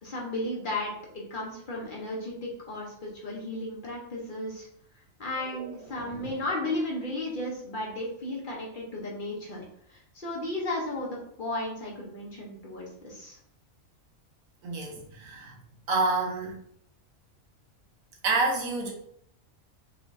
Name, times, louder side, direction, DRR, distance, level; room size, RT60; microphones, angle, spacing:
voice 1, 0.0-4.7 4.9-13.4, left 1 dB, 45° left, -3 dB, 0.9 m, -34 dB
voice 2, 14.6-15.5 15.9-16.6 18.2-18.9, right 3 dB, 85° right, 0 dB, 1.3 m, -28 dB
4.6 x 3.0 x 2.6 m, 0.69 s
omnidirectional pair, 1.4 m